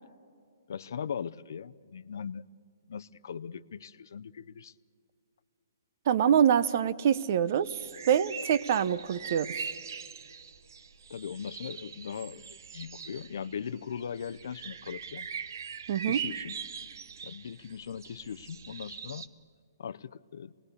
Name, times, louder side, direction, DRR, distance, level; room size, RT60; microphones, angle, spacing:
voice 1, 0.7-2.4 2.9-4.7 11.1-15.3 16.1-16.6 17.2-19.3 19.8-20.5, left 7 dB, 60° left, 16 dB, 0.6 m, -39 dB
voice 2, 6.1-9.5 15.9-16.2, right 9 dB, 35° right, 16 dB, 0.7 m, -25 dB
sound 1, 7.6-19.3, right 7 dB, 60° right, 1.0 m, -42 dB
26.5 x 20.0 x 8.3 m, 2.3 s
hypercardioid pair, 170°, 2 cm